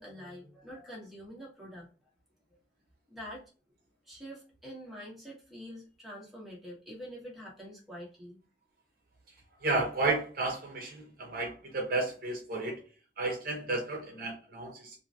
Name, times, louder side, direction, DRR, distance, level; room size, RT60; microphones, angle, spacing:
voice 1, 0.0-1.8 3.1-3.4 4.0-8.4, equal, ahead, -5 dB, 1.3 m, -46 dB
voice 2, 9.6-12.8 13.2-14.9, right 2 dB, 55° right, 1 dB, 0.7 m, -32 dB
3.0 x 2.6 x 2.4 m, 0.34 s
head